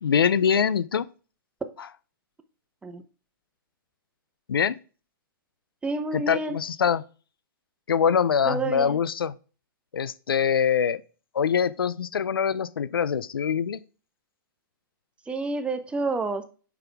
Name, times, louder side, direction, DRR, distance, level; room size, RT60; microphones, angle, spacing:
voice 1, 0.0-1.0 4.5-4.8 6.1-7.0 7.9-9.3 9.9-11.0 11.3-13.8, left 7 dB, 85° left, 0.5 m, -24 dB
voice 2, 5.8-6.6 8.5-9.0 15.3-16.4, right 3 dB, 10° right, 0.8 m, -29 dB
9.3 x 5.8 x 3.5 m
hypercardioid pair, 130°, 12 cm